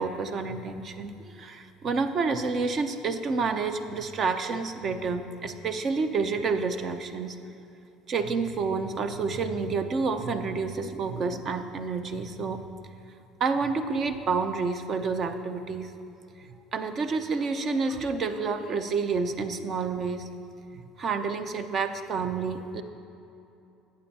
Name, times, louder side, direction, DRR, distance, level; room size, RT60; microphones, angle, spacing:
voice 1, 0.0-7.4 8.1-12.7 13.4-15.9 16.4-20.3 20.7-22.8, right 4 dB, 45° right, 9 dB, 0.7 m, -29 dB
11.5 x 8.8 x 4.3 m, 2.8 s
supercardioid pair, 90°, 0 cm